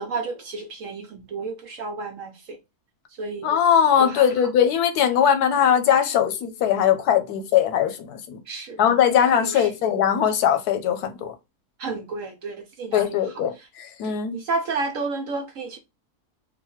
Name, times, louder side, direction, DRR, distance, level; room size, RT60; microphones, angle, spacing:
voice 1, 0.0-2.6 3.2-3.5 4.0-4.3 8.5-8.8 9.3-9.7 11.8-13.2 13.6-13.7 14.0-15.8, right 3 dB, 65° right, 1.0 m, -31 dB
voice 2, 3.4-8.4 8.8-11.3 12.9-13.5 13.8-14.4, left 9 dB, 90° left, 1.2 m, -20 dB
4.0 x 2.2 x 4.4 m
omnidirectional pair, 1.6 m